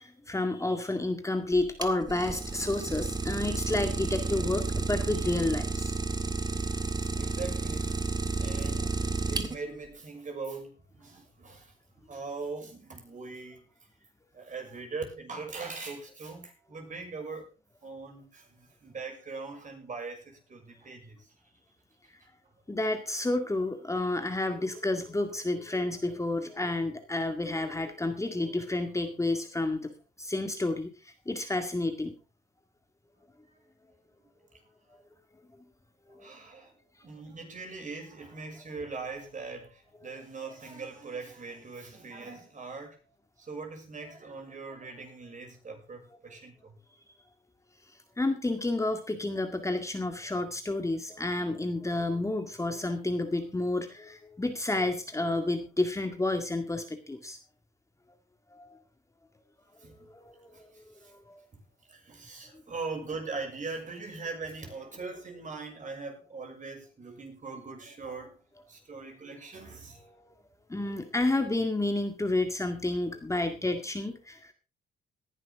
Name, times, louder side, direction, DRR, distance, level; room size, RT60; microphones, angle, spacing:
voice 1, 0.0-5.9 22.7-32.1 36.1-36.3 46.3-46.4 48.2-57.4 58.5-58.8 60.1-61.4 70.0-70.4 70.7-74.5, left 2 dB, 15° left, 6 dB, 2.0 m, -30 dB
Idling, 1.5-9.9, right 3 dB, 20° right, 1.8 m, -31 dB
voice 2, 6.9-8.1 8.3-13.7 14.3-17.5 17.8-21.3 22.7-22.8 33.5-33.6 34.2-34.3 34.9-35.0 36.1-36.7 37.0-43.0 43.4-46.8 59.8-60.1 60.5-61.1 61.9-68.4 68.7-70.1, right 4 dB, 40° right, 3 dB, 6.4 m, -41 dB
18.5 x 11.0 x 3.6 m, 0.31 s
cardioid pair, 90°, 20 cm